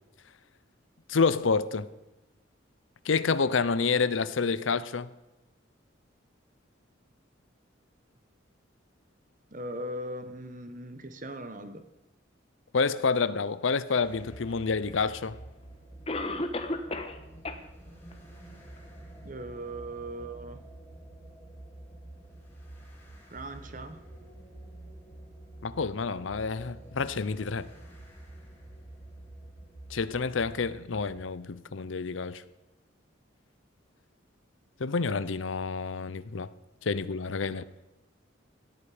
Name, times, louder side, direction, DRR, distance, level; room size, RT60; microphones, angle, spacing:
voice 1, 1.1-1.9 3.0-5.1 12.7-15.4 25.6-27.7 29.9-32.4 34.8-36.5 36.8-37.6, left 4 dB, 80° left, 0.7 m, -28 dB
voice 2, 9.5-11.8 19.2-20.6 23.3-24.0, right 1 dB, 40° right, 1.2 m, -39 dB
sound 1, 14.0-31.2, right 1 dB, 10° left, 3.9 m, -48 dB
Cough, 14.9-15.0 16.1-17.2 17.4-17.6 18.1-18.2 18.8-18.9, left 2 dB, 30° left, 1.3 m, -32 dB
17.5 x 13.0 x 5.0 m
head